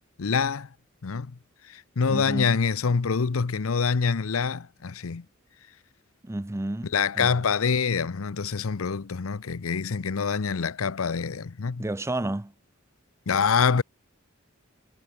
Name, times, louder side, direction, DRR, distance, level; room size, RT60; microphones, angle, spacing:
voice 1, 0.2-0.7 1.0-1.3 1.7-5.2 6.9-11.8 13.3-13.8, left 5 dB, 85° left, 0.7 m, -25 dB
voice 2, 2.1-2.6 6.2-7.4 11.8-12.5, right 1 dB, 15° right, 0.5 m, -31 dB
head